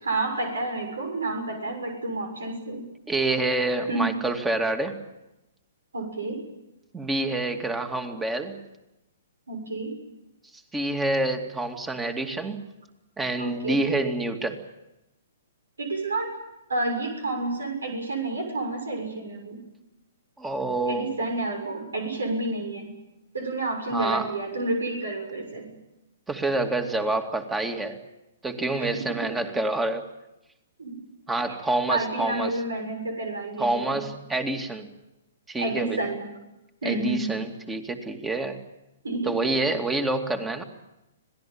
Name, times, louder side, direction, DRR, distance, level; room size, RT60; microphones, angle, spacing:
voice 1, 0.0-2.9 3.9-4.1 5.9-6.4 9.5-10.0 13.4-13.8 15.8-16.3 16.7-19.6 20.9-23.0 23.3-25.7 28.8-29.3 30.8-31.0 31.9-34.0 35.6-36.2 36.8-37.3 39.0-39.3, right 2 dB, 90° right, 5 dB, 6.9 m, -30 dB
voice 2, 3.1-5.0 6.9-8.6 10.7-12.6 13.2-14.6 20.4-21.1 23.9-24.3 26.3-28.0 28.4-30.0 31.3-32.5 33.6-34.9 35.5-36.0 36.8-38.6 39.3-40.6, right 2 dB, 10° right, 6 dB, 2.5 m, -27 dB
26.0 x 18.5 x 8.9 m, 0.95 s
hypercardioid pair, 135°, 0 cm